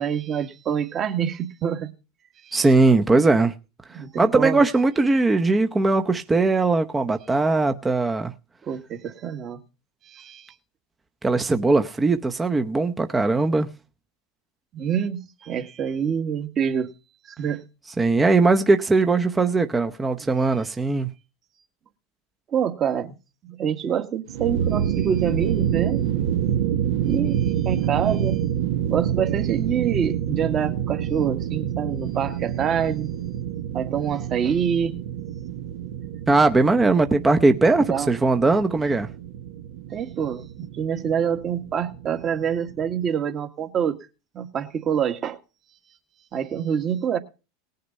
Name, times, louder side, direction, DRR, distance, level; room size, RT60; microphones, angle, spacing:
voice 1, 0.0-1.9 2.4-2.5 3.9-4.6 8.6-9.6 10.0-10.5 14.7-16.9 17.3-17.6 22.5-23.2 23.4-26.1 27.0-28.4 28.9-33.1 33.7-34.9 37.9-38.1 39.9-44.0 44.3-45.4 46.3-47.2, right 8 dB, 35° right, 1.7 m, -26 dB
voice 2, 2.5-3.5 4.2-8.3 11.2-13.7 18.0-21.1 36.3-39.1, right 3 dB, 15° right, 0.8 m, -20 dB
sound 1, 24.3-43.1, right 10 dB, 70° right, 1.2 m, -28 dB
18.5 x 6.6 x 5.4 m
hypercardioid pair, 110°, 0 cm